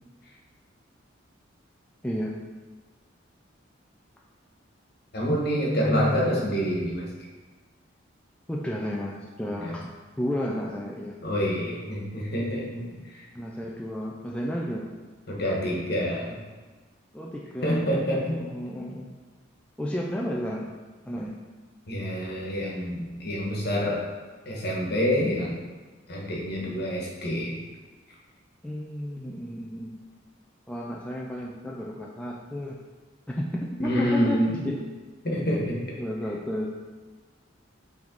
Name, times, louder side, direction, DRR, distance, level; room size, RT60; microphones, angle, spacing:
voice 1, 2.0-2.4 5.3-6.2 8.5-9.9 10.2-11.2 12.8-13.1 13.3-14.9 17.1-17.9 18.3-19.1 19.8-20.7 21.0-21.4 28.6-30.0 30.7-32.8 33.3-34.8 35.3-36.8, equal, 5° left, -3 dB, 0.4 m, -32 dB
voice 2, 5.1-7.1 9.5-9.7 11.2-13.3 15.3-16.4 17.6-18.4 21.9-24.1 24.4-25.6 26.1-27.6 33.8-34.6 35.2-35.8, equal, 55° left, -3 dB, 1.5 m, -27 dB
7.5 x 3.6 x 3.9 m, 1.3 s
head